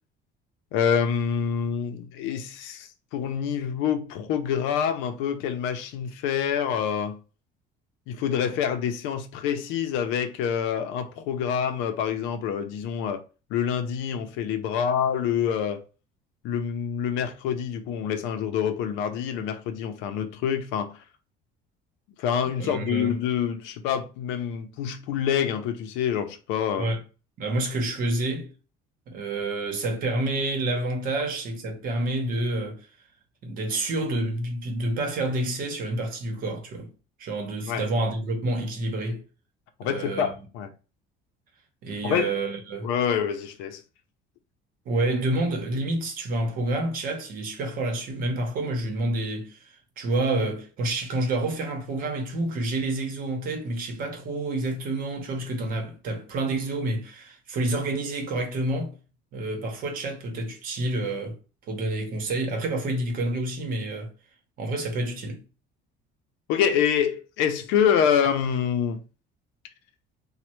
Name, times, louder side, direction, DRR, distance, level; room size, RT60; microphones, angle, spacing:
voice 1, 0.7-7.2 8.1-13.2 13.5-15.8 16.4-21.0 22.2-26.9 37.6-37.9 39.8-40.7 42.0-42.3 42.8-43.8 66.5-69.0, left 8 dB, 85° left, 0.5 m, -26 dB
voice 2, 22.6-23.2 26.8-27.0 27.4-28.5 29.1-32.9 33.4-36.9 37.2-39.2 39.8-40.3 41.8-42.9 44.9-58.9 59.3-61.4 61.7-64.1 64.6-65.4, right 2 dB, 45° right, 0.8 m, -28 dB
3.1 x 2.1 x 2.9 m
cardioid pair, 160°, 19 cm